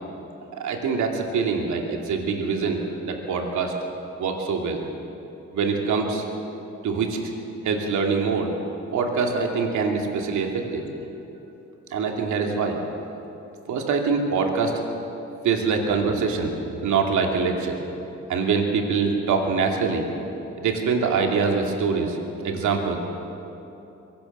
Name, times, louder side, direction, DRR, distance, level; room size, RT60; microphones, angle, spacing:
voice 1, 0.5-3.7 4.2-4.8 5.5-6.3 6.8-7.3 7.6-8.5 8.9-10.9 11.9-12.8 13.7-14.8 15.4-17.8 18.3-20.0 20.6-22.2 22.4-23.0, right 5 dB, 75° right, 2 dB, 2.7 m, -24 dB
22.5 x 17.5 x 6.8 m, 2.9 s
cardioid pair, 90°, 30 cm